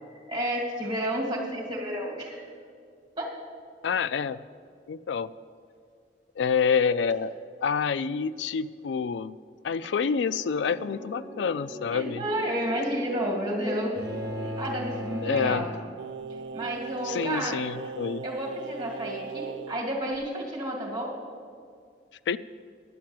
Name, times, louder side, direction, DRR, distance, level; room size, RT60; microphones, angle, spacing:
voice 1, 0.1-2.4 3.2-3.3 11.9-14.0 14.4-15.7 16.5-17.6 18.2-21.1, right 1 dB, 25° right, -1 dB, 2.1 m, -31 dB
voice 2, 3.8-4.4 4.9-5.3 6.4-7.3 7.6-9.3 9.6-12.2 15.2-15.7 17.0-18.2 22.3-22.4, left 6 dB, 85° left, 15 dB, 0.4 m, -27 dB
sound 1, 9.8-15.8, equal, 70° left, 1.9 m, -43 dB
sound 2, 14.0-16.5, equal, 60° right, 1.1 m, -36 dB
Singing, 16.0-19.8 20.1-20.3, right 5 dB, 85° right, 0.4 m, -38 dB
10.5 x 7.3 x 7.8 m, 2.1 s
head